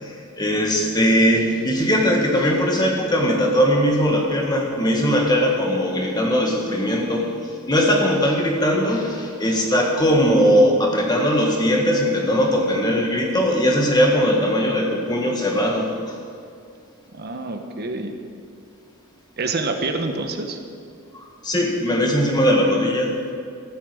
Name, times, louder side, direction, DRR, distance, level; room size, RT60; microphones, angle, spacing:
voice 1, 0.0-7.4 7.7-16.1 21.1-23.2, equal, 20° left, 0 dB, 1.8 m, -20 dB
voice 2, 17.1-18.1 19.4-20.6, right 3 dB, 50° right, 5 dB, 1.0 m, -27 dB
14.0 x 8.4 x 7.7 m, 2.4 s
head